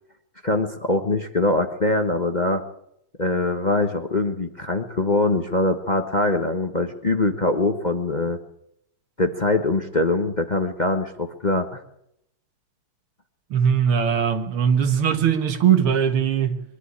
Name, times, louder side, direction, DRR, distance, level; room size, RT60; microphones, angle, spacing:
voice 1, 0.4-2.6 3.2-8.4 9.2-11.8, left 2 dB, 25° left, 1.0 m, -23 dB
voice 2, 13.5-16.6, right 8 dB, 85° right, 2.4 m, -20 dB
22.5 x 12.0 x 9.8 m
omnidirectional pair, 2.3 m